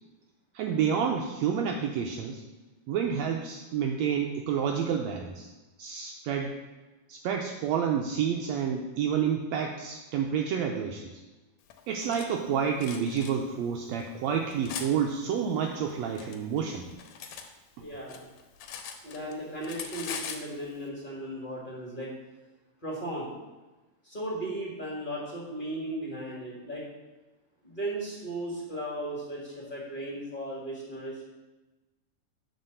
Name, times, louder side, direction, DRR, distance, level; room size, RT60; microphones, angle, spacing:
voice 1, 0.5-2.4 2.9-5.5 5.8-6.6 7.1-11.2 11.9-16.9 17.8-17.9, right 7 dB, 90° right, 3 dB, 1.5 m, -29 dB
Cutlery silverware, 11.7-12.3 12.8-13.3 14.0-14.9 15.8-17.5 17.8-19.3 19.6-20.5, left 7 dB, 75° left, 1.7 m, -40 dB
voice 2, 17.8-18.3 19.0-22.1 22.8-23.3 24.0-26.8 27.6-31.2, right 1 dB, 25° left, -4 dB, 1.0 m, -36 dB
8.4 x 3.9 x 6.6 m, 1.1 s
omnidirectional pair, 3.6 m